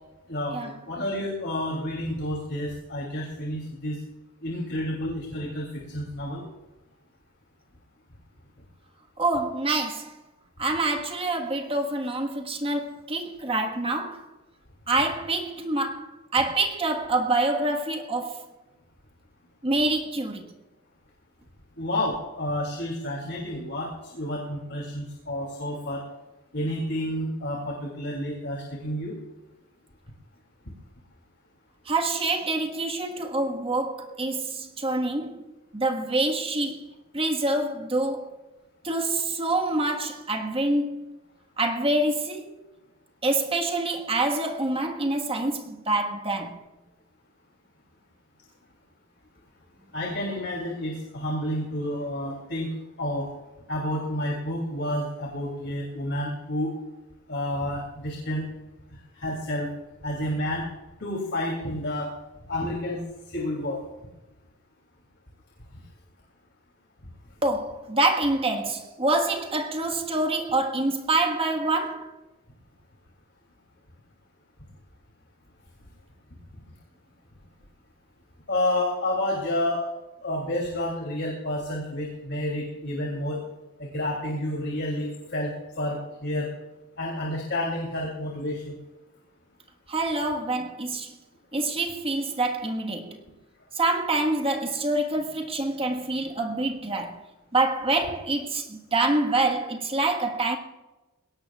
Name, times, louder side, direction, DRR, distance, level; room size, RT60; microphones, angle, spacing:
voice 1, 0.3-4.0 4.4-6.4 21.8-26.0 26.5-29.1 49.9-52.7 53.0-53.3 53.7-56.7 57.3-58.4 59.2-59.7 60.0-60.6 61.0-62.1 62.5-63.0 63.3-63.8 78.5-79.9 80.2-83.4 83.8-85.5 85.8-86.5 87.0-88.7, left 1 dB, 55° left, 3.0 m, -30 dB
voice 2, 9.2-10.1 10.6-14.3 14.9-18.5 19.6-20.5 31.8-35.5 35.7-36.9 37.1-38.4 38.8-41.2 41.6-42.5 43.2-46.6 67.4-72.2 89.9-91.1 91.5-93.2 93.7-97.2 97.5-100.6, right 2 dB, 25° right, 1.5 m, -26 dB
21.0 x 18.0 x 2.4 m
head